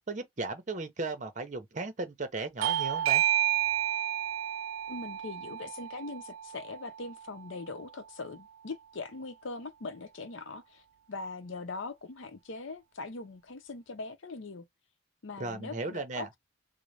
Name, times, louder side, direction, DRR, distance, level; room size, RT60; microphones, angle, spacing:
voice 1, 0.1-3.2 15.4-16.3, right 3 dB, 40° right, 0.8 m, -36 dB
Bell / Doorbell, 2.6-7.8, right 12 dB, 85° right, 0.4 m, -31 dB
voice 2, 4.9-14.6 15.2-16.4, left 3 dB, 70° left, 0.7 m, -41 dB
3.9 x 2.1 x 3.2 m
head